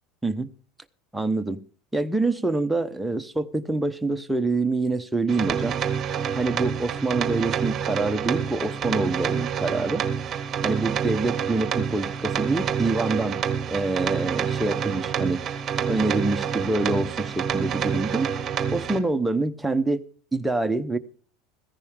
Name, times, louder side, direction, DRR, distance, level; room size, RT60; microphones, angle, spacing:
voice 1, 1.1-1.6 1.9-5.8 6.4-10.0 10.6-13.4 13.7-15.4 15.9-18.3 18.7-20.0 20.3-21.0, right 2 dB, 5° right, 0.8 m, -26 dB
sound 1, 5.3-19.0, right 7 dB, 30° right, 1.5 m, -27 dB
15.0 x 14.5 x 3.7 m
supercardioid pair, 135°, 0 cm